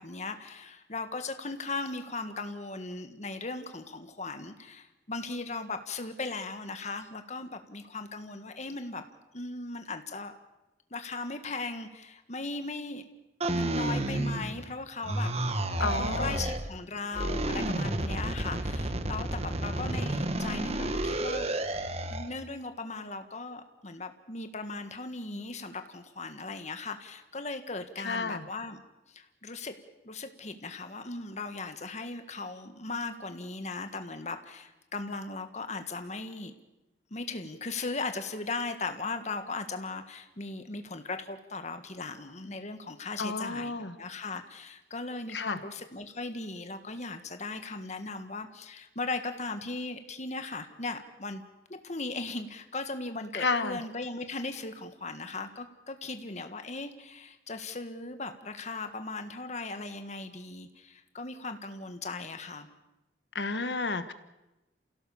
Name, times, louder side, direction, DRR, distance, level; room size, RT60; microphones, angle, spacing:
voice 1, 0.0-9.0 9.3-10.3 10.9-13.1 13.5-21.5 22.1-28.8 29.1-29.7 30.0-36.5 37.1-51.4 51.7-62.7, left 3 dB, 40° left, 8 dB, 1.6 m, -38 dB
sound 1, 13.4-14.7 15.0-16.7 17.1-22.3, right 1 dB, 35° right, 1.3 m, -31 dB
voice 2, 15.8-16.5 28.0-28.4 43.2-44.0 45.3-45.6 53.3-53.8 63.3-64.1, left 3 dB, 70° left, 11 dB, 1.4 m, -31 dB
28.5 x 16.5 x 7.1 m, 0.98 s
head